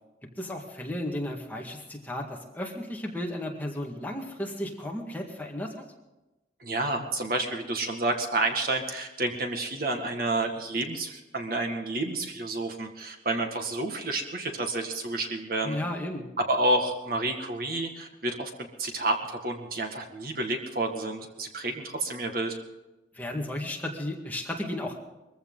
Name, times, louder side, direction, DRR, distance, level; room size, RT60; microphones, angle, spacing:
voice 1, 0.4-5.7 15.6-16.2 23.1-25.0, left 1 dB, 10° left, 0 dB, 1.9 m, -34 dB
voice 2, 6.6-15.8 16.5-18.5 18.8-22.6, right 2 dB, 50° right, 3 dB, 1.9 m, -30 dB
22.0 x 15.0 x 4.0 m, 1.0 s
head